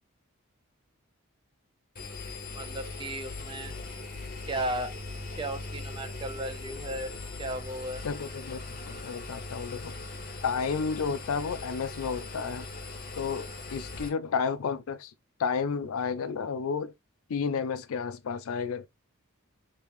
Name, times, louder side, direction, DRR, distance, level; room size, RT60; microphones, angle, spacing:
Engine, 1.9-14.1, left 3 dB, 40° left, 0.8 m, -40 dB
voice 1, 2.5-3.7 4.4-4.9 5.3-7.1 7.4-8.0, right 1 dB, 20° right, 0.5 m, -35 dB
voice 2, 8.0-10.0 10.4-12.7 13.2-15.1 15.4-16.9 17.3-18.9, left 5 dB, 75° left, 0.4 m, -31 dB
2.9 x 2.9 x 3.5 m
head